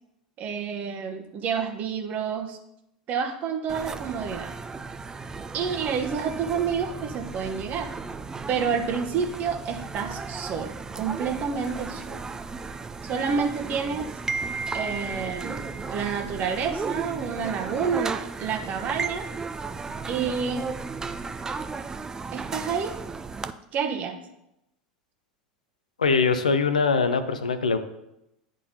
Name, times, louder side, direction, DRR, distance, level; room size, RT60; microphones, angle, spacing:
voice 1, 0.4-2.6 3.1-4.5 5.5-7.9 8.5-12.2 13.0-14.1 14.7-19.3 20.1-20.7 22.3-23.0 23.7-24.2, right 6 dB, 40° right, 4 dB, 0.9 m, -29 dB
sound 1, 3.7-23.5, right 4 dB, 15° right, 0.4 m, -35 dB
voice 2, 26.0-27.8, left 5 dB, 85° left, 10 dB, 0.5 m, -22 dB
10.5 x 3.7 x 2.8 m, 0.86 s
hypercardioid pair, 80°, 4 cm